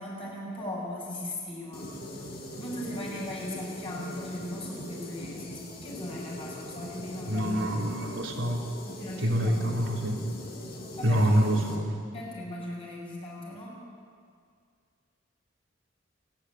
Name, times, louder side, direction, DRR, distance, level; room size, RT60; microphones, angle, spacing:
voice 1, 0.0-1.9 2.5-7.7 8.8-9.6 11.0-11.7 12.1-13.7, left 1 dB, 30° left, -4 dB, 7.0 m, -38 dB
sound 1, 1.7-11.8, left 1 dB, 55° left, 4.1 m, -41 dB
voice 2, 7.3-8.6 9.2-10.2 11.0-11.9, equal, 80° right, 0 dB, 3.2 m, -26 dB
28.5 x 10.5 x 9.9 m, 2.2 s
head